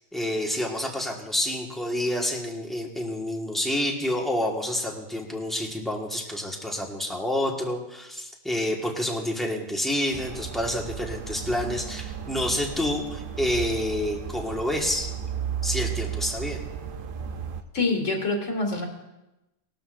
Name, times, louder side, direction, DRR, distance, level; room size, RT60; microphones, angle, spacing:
voice 1, 0.1-15.1 15.6-16.6, left 1 dB, ahead, 0 dB, 1.5 m, -28 dB
sound 1, 10.1-17.6, right 8 dB, 50° right, 0.8 m, -34 dB
voice 2, 17.7-18.9, left 3 dB, 75° left, 1 dB, 2.5 m, -25 dB
19.5 x 12.5 x 2.6 m, 0.97 s
omnidirectional pair, 1.3 m